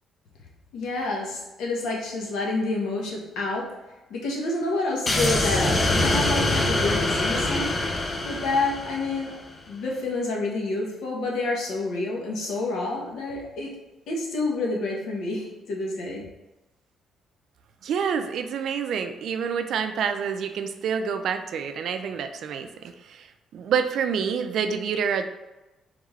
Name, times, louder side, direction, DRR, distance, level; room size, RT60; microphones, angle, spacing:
voice 1, 0.7-3.7 4.1-7.7 8.2-9.4 9.7-13.7 14.1-16.2, left 2 dB, 80° left, -2 dB, 1.1 m, -28 dB
sound 1, 5.1-9.4, left 2 dB, 25° left, 0.5 m, -24 dB
voice 2, 17.8-23.3 23.5-25.3, right 7 dB, 65° right, 8 dB, 0.4 m, -27 dB
3.6 x 3.5 x 3.2 m, 1.0 s
cardioid pair, 130°, 0 cm